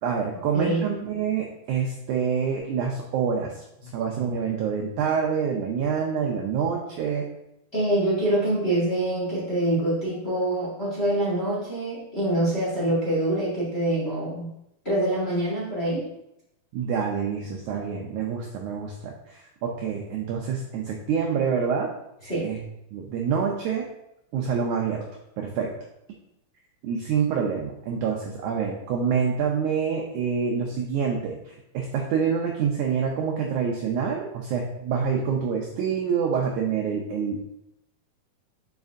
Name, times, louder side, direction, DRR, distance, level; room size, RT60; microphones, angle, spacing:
voice 1, 0.0-7.3 16.7-21.9 22.4-22.6 22.9-23.9 24.3-25.0 25.4-25.7 26.8-37.4, right 6 dB, 80° right, 0 dB, 1.8 m, -27 dB
voice 2, 7.7-14.5 14.8-16.0 22.2-22.5, right 1 dB, 25° left, -6 dB, 1.6 m, -25 dB
7.3 x 5.1 x 2.6 m, 0.84 s
omnidirectional pair, 4.2 m